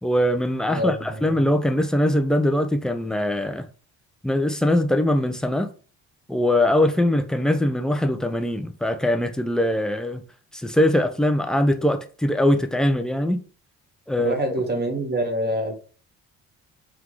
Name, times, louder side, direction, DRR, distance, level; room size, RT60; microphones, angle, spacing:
voice 1, 0.0-3.7 4.2-5.7 6.3-10.2 10.5-13.4 14.1-14.3, left 1 dB, ahead, 0.4 m, -22 dB
voice 2, 0.7-1.4 14.2-15.8, right 1 dB, 25° right, 1.4 m, -26 dB
3.7 x 2.2 x 3.2 m
hypercardioid pair, 50°, 41 cm